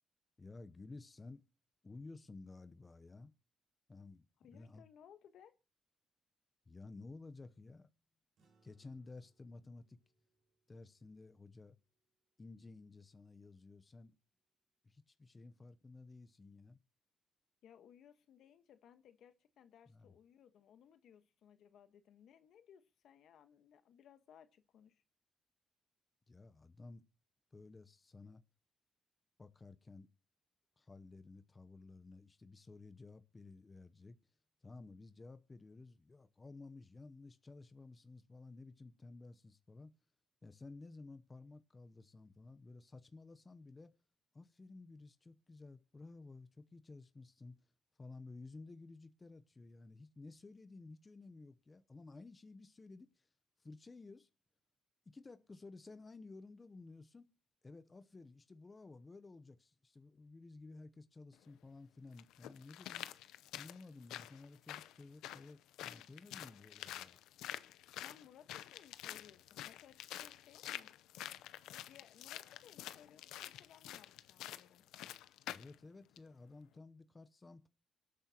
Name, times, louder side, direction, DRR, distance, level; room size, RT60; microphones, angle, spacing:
voice 1, 0.4-1.4 1.8-3.3 3.9-4.3 4.5-4.8 6.7-7.9 8.6-10.0 10.7-11.8 12.4-14.2 14.8-16.8 19.9-20.1 26.3-27.0 27.5-28.4 29.4-30.1 30.8-34.2 34.6-39.9 40.4-43.9 44.3-47.6 48.0-53.3 53.6-54.3 55.1-57.3 57.6-63.1 63.5-67.2 75.5-77.7, left 3 dB, 25° left, 0.8 m, -54 dB
voice 2, 4.4-5.5 17.6-25.0 68.0-70.9 71.7-74.9, left 9 dB, 75° left, 1.3 m, -62 dB
sound 1, 8.4-13.0, right 3 dB, 65° right, 5.1 m, -79 dB
sound 2, 61.3-61.4 62.2-75.8 76.2-76.3, left 13 dB, 90° left, 0.6 m, -48 dB
24.5 x 8.6 x 2.9 m
cardioid pair, 90°, 0 cm